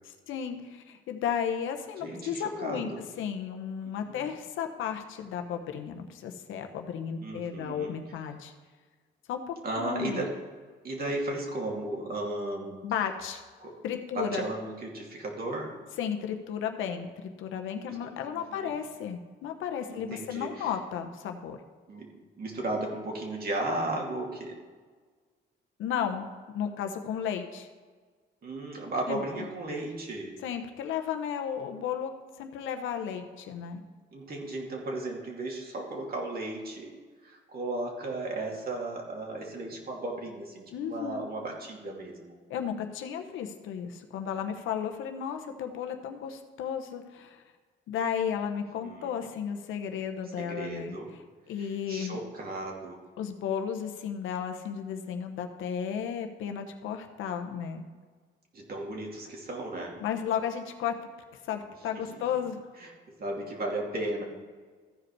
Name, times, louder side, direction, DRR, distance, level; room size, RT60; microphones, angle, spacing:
voice 1, 0.0-2.9 3.2-8.5 9.3-10.3 12.8-13.4 13.8-14.5 16.0-21.6 25.8-27.7 29.1-29.4 30.4-32.1 32.4-33.8 40.7-41.3 42.5-47.4 47.9-51.0 51.5-52.2 53.2-57.8 60.0-60.9 61.4-62.6, left 8 dB, 90° left, 6 dB, 1.0 m, -34 dB
voice 2, 2.0-3.0 3.8-4.3 7.2-8.0 9.6-10.3 10.8-12.8 13.6-13.8 14.1-15.7 17.9-18.7 19.9-20.7 21.9-22.1 22.4-24.6 28.4-30.3 34.1-36.9 37.2-42.4 48.5-49.3 50.4-51.1 51.6-53.0 58.5-60.0 61.9-62.2 62.8-62.9 63.2-64.2, right 2 dB, 50° right, -1 dB, 2.6 m, -35 dB
14.5 x 5.1 x 4.7 m, 1.5 s
cardioid pair, 90°, 20 cm